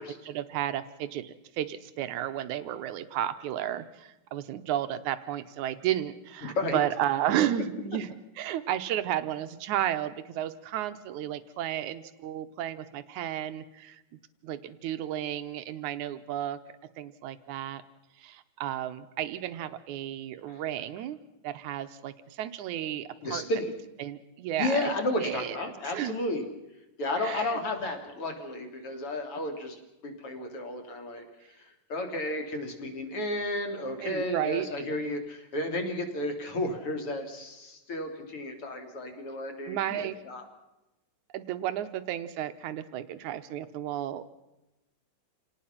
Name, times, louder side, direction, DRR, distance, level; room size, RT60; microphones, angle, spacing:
voice 1, 0.0-8.1 8.4-16.6 17.0-17.8 18.2-21.2 21.4-23.4 24.0-24.8 25.2-25.6 25.9-26.2 27.2-27.6 34.0-34.7 39.7-40.2 41.3-44.3, right 11 dB, 75° right, 11 dB, 1.8 m, -33 dB
voice 2, 6.4-6.8 20.5-20.6 23.2-23.7 24.6-26.4 27.0-31.3 31.6-40.4, left 1 dB, 40° left, 5 dB, 3.2 m, -33 dB
27.5 x 18.5 x 5.8 m, 0.97 s
omnidirectional pair, 4.3 m